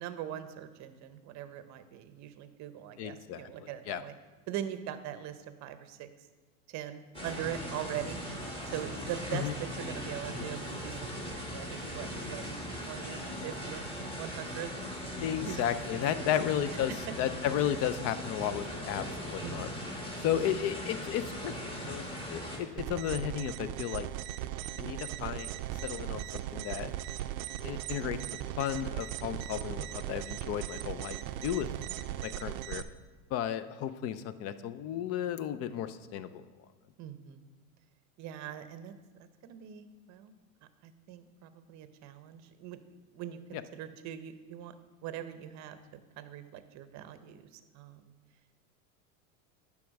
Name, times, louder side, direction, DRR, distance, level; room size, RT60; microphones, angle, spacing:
voice 1, 0.0-4.1 4.5-6.1 6.7-8.2 8.7-12.6 12.9-13.8 14.1-14.7 15.4-15.6 15.9-16.3 19.4-19.8 29.3-29.6 31.7-31.8 37.0-37.4 38.2-38.9 39.2-40.3 40.8-42.8 43.1-44.7 45.0-48.1, right 10 dB, 40° right, 11 dB, 0.7 m, -42 dB
voice 2, 3.0-4.0 9.3-9.5 15.2-19.7 20.2-24.1 24.8-26.9 27.6-28.2 28.6-31.2 31.4-31.7 32.2-32.8 33.3-36.5 43.5-43.6, left 10 dB, 35° left, 13 dB, 0.4 m, -34 dB
sound 1, 7.1-22.6, equal, 10° left, 1.6 m, -39 dB
sound 2, 22.8-32.8, right 12 dB, 75° right, 0.5 m, -38 dB
9.8 x 3.5 x 6.3 m, 1.3 s
supercardioid pair, 115°, 43 cm